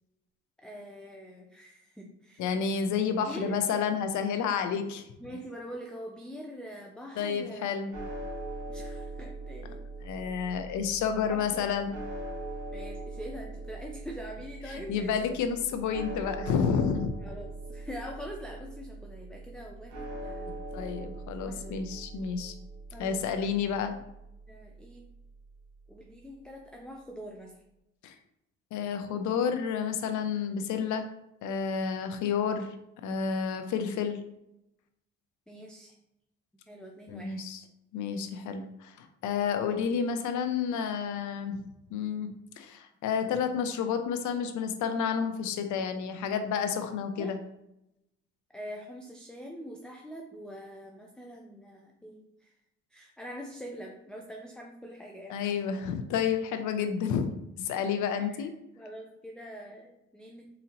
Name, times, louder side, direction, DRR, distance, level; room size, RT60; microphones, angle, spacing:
voice 1, 0.6-2.4 3.2-3.6 4.6-4.7 5.2-7.7 8.0-8.1 8.7-9.8 10.1-10.4 11.3-11.7 12.7-15.4 17.2-21.1 21.4-21.8 22.9-23.5 24.5-25.1 25.9-27.6 35.5-36.0 36.7-37.4 47.2-47.3 48.5-52.5 52.9-55.6 58.2-58.5 58.8-60.5, equal, 5° left, 1 dB, 0.3 m, -44 dB
voice 2, 2.4-5.0 7.2-7.9 10.0-11.9 14.9-17.1 20.5-22.5 23.0-23.9 28.0-28.2 28.7-31.1 31.4-32.7 33.0-34.2 37.1-37.6 37.9-41.6 41.9-47.4 55.3-57.3 57.6-58.5, left 6 dB, 75° left, 8 dB, 0.5 m, -30 dB
sound 1, 7.9-26.2, right 2 dB, 85° right, 1.2 m, -42 dB
3.9 x 2.8 x 2.8 m, 0.85 s
cardioid pair, 90°, 30 cm